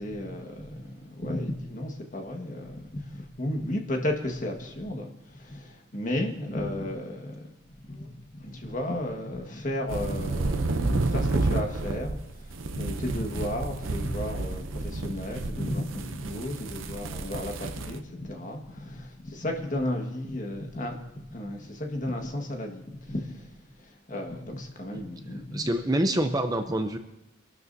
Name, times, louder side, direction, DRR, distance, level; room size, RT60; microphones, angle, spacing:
voice 1, 0.0-7.5 7.8-25.7, left 1 dB, 40° left, 2 dB, 1.6 m, -34 dB
sound 1, 9.9-18.0, right 2 dB, 80° right, 0.7 m, -30 dB
voice 2, 25.5-27.0, right 1 dB, 20° right, 7 dB, 0.6 m, -26 dB
24.5 x 12.0 x 2.7 m, 0.92 s
head